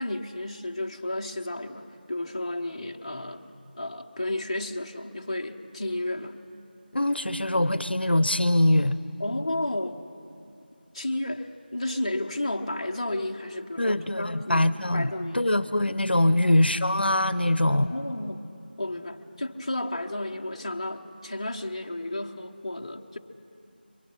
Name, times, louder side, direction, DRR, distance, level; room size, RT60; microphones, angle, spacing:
voice 1, 0.0-3.4 3.8-6.4 9.2-10.0 10.9-14.7 14.9-15.5 16.3-16.5 17.9-18.5 18.8-23.2, left 1 dB, 30° left, 1 dB, 1.0 m, -32 dB
voice 2, 6.9-9.0 13.8-17.9, left 1 dB, 75° left, 14 dB, 0.8 m, -23 dB
29.5 x 23.5 x 5.6 m, 2.6 s
figure-of-eight pair, 175°, 6 cm